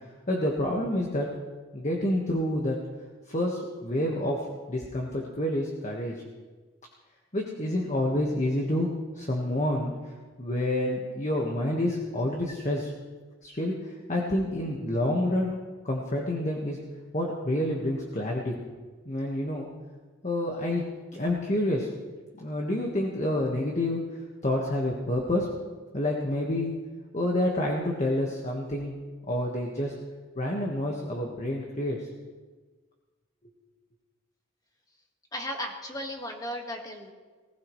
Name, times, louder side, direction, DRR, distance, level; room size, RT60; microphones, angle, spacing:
voice 1, 0.3-1.3 1.7-2.8 3.3-6.2 7.3-9.9 10.4-12.9 13.4-15.5 15.8-16.8 17.1-18.5 19.0-19.7 20.2-20.9 21.1-21.9 22.4-24.1 24.4-25.5 25.9-26.8 27.1-28.9 29.3-30.0 30.3-32.1, left 1 dB, 35° left, -1 dB, 1.6 m, -28 dB
voice 2, 35.3-37.1, left 1 dB, 20° left, 2 dB, 1.8 m, -35 dB
19.5 x 16.5 x 3.2 m, 1.4 s
head